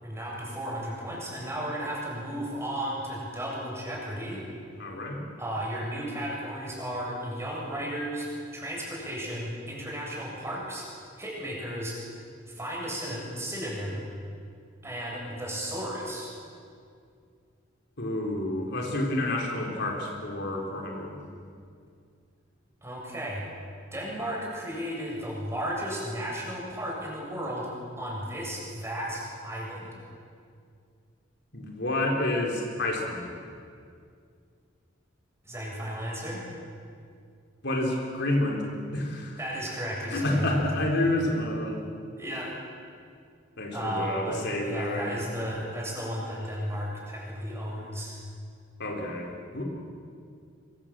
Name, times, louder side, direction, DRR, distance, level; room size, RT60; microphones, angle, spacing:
voice 1, 0.0-4.4 5.4-10.9 11.2-12.0 12.5-14.0 14.8-16.3 22.8-23.5 23.9-27.7 28.0-30.0 35.4-36.4 39.4-40.6 42.2-42.5 43.7-48.2, equal, 15° right, -3 dB, 7.7 m, -34 dB
voice 2, 4.8-5.2 18.0-21.2 31.5-33.3 37.6-39.4 40.1-41.8 43.6-45.2 48.8-49.6, left 1 dB, 60° left, 0 dB, 4.0 m, -29 dB
26.0 x 24.0 x 7.6 m, 2.3 s
head